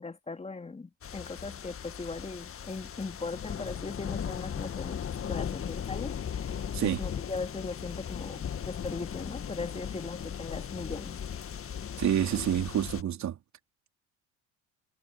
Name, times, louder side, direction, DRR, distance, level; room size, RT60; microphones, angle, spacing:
voice 1, 0.0-5.0 5.3-6.2 6.8-11.4, left 3 dB, 15° left, 2.5 m, -39 dB
sound 1, 1.0-13.0, left 8 dB, 35° left, 1.7 m, -37 dB
voice 2, 12.0-13.4, right 10 dB, 45° right, 3.5 m, -28 dB
hypercardioid pair, 70°, 38 cm